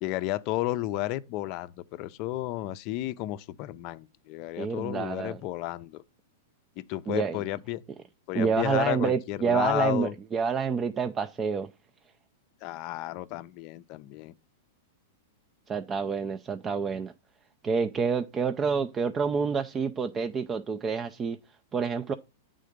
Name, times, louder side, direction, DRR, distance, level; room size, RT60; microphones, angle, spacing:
voice 1, 0.0-6.0 6.8-7.8 8.3-10.1 12.6-14.3, left 16 dB, 45° left, 0.4 m, -32 dB
voice 2, 4.6-5.4 7.1-7.4 8.3-11.7 15.7-17.1 17.6-21.4 21.7-22.1, right 6 dB, 20° right, 0.4 m, -28 dB
8.4 x 3.7 x 5.0 m
hypercardioid pair, 130°, 0 cm